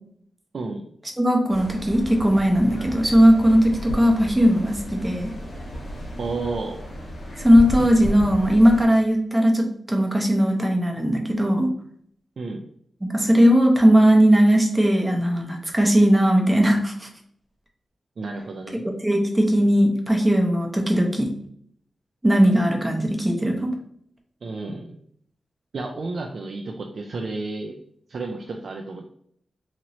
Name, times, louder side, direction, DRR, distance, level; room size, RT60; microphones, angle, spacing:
voice 1, 1.2-5.3 7.4-11.7 13.0-17.1 18.8-21.3 22.2-23.7, equal, 15° right, 1 dB, 0.6 m, -18 dB
sound 1, 1.5-8.8, equal, 70° left, 1.1 m, -33 dB
voice 2, 6.2-6.8 12.4-12.6 18.2-18.8 24.4-25.0 25.7-27.8 28.1-29.1, right 3 dB, 60° right, 2 dB, 0.3 m, -31 dB
2.9 x 2.9 x 2.6 m, 0.65 s
wide cardioid pair, 110°, 0 cm